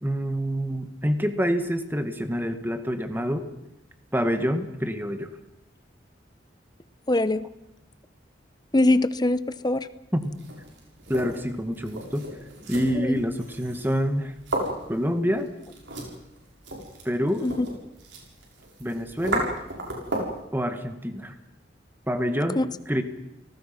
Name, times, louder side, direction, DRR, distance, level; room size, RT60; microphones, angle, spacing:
voice 1, 0.0-3.4 4.1-5.3 10.1-10.4 11.1-12.2 12.7-14.3 14.9-15.5 17.1-17.5 18.8-19.5 20.5-21.3 22.1-23.0, equal, 10° right, 7 dB, 2.0 m, -27 dB
voice 2, 7.1-7.4 8.7-9.9 13.0-13.2 17.4-17.7 22.6-22.7, left 2 dB, 20° left, 14 dB, 0.9 m, -22 dB
sound 1, 10.2-20.4, right 1 dB, 85° right, 7.1 m, -35 dB
30.0 x 19.0 x 6.0 m, 0.88 s
head